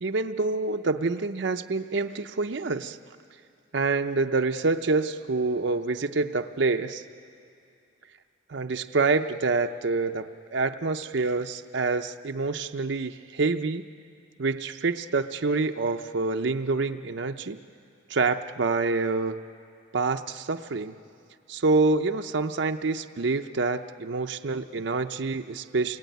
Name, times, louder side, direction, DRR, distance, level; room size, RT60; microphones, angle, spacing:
voice 1, 0.0-3.0 3.7-7.0 8.5-13.8 14.4-17.6 18.1-19.4 19.9-20.9 21.5-26.0, right 3 dB, 60° right, 6 dB, 0.6 m, -27 dB
28.5 x 21.5 x 9.3 m, 2.6 s
head